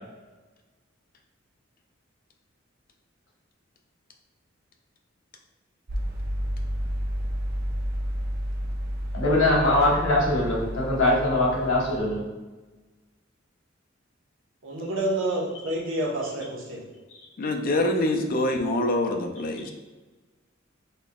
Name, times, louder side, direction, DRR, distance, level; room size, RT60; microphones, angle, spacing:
sound 1, 5.9-12.0, equal, 55° right, 0.6 m, -31 dB
voice 1, 9.1-12.2, left 1 dB, 85° left, -4 dB, 1.1 m, -22 dB
voice 2, 14.6-16.8, right 1 dB, 80° right, -3 dB, 0.9 m, -28 dB
voice 3, 17.4-19.7, left 1 dB, 45° left, 4 dB, 0.4 m, -25 dB
4.2 x 3.0 x 2.3 m, 1.2 s
head